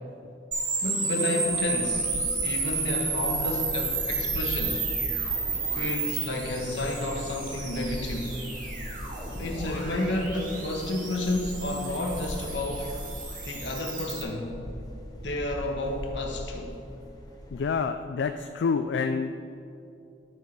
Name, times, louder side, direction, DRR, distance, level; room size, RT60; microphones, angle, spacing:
sound 1, 0.5-14.2, right 4 dB, 50° right, 2.0 m, -32 dB
voice 1, 0.8-2.1 2.4-4.9 5.7-8.4 9.4-12.9 13.4-14.5 15.2-16.7, left 1 dB, 90° left, 2 dB, 1.3 m, -31 dB
sound 2, 1.4-17.7, equal, 20° left, 1.0 m, -40 dB
voice 2, 17.5-19.3, left 5 dB, 75° left, 8 dB, 0.3 m, -27 dB
12.5 x 4.6 x 6.0 m, 2.7 s
head